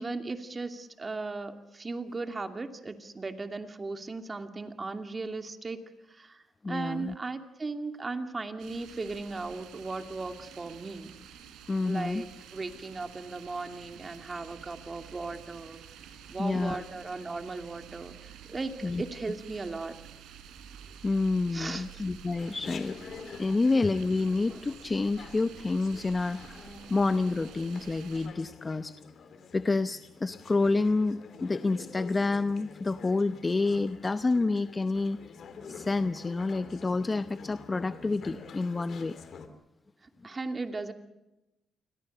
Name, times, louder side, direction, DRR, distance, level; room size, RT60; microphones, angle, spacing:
voice 1, 0.0-5.8 6.1-11.1 11.8-15.8 16.3-19.9 21.5-21.9 40.0-40.9, right 3 dB, 30° right, 7 dB, 2.6 m, -37 dB
voice 2, 6.6-7.1 11.7-12.2 16.4-16.8 18.8-19.0 21.0-23.0 23.4-28.9 29.5-35.2 35.7-39.2, left 3 dB, 25° left, 12 dB, 0.8 m, -28 dB
sound 1, 8.6-28.3, right 8 dB, 85° right, 3.7 m, -50 dB
Chatter, 22.4-39.5, left 5 dB, 60° left, 2.7 m, -47 dB
28.5 x 21.5 x 6.6 m, 0.97 s
cardioid pair, 90°, 0 cm